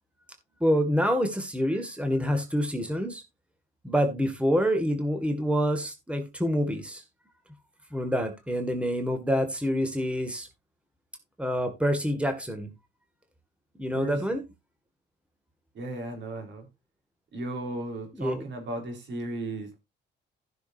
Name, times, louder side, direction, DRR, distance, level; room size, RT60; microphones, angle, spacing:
voice 1, 0.6-3.2 3.8-7.0 7.9-10.5 11.4-12.7 13.8-14.4 18.2-18.4, equal, 5° right, 2.1 m, -27 dB
voice 2, 13.9-14.4 15.7-16.7 17.3-19.8, right 2 dB, 65° right, 4.2 m, -35 dB
15.5 x 6.6 x 2.7 m
cardioid pair, 90°, 20 cm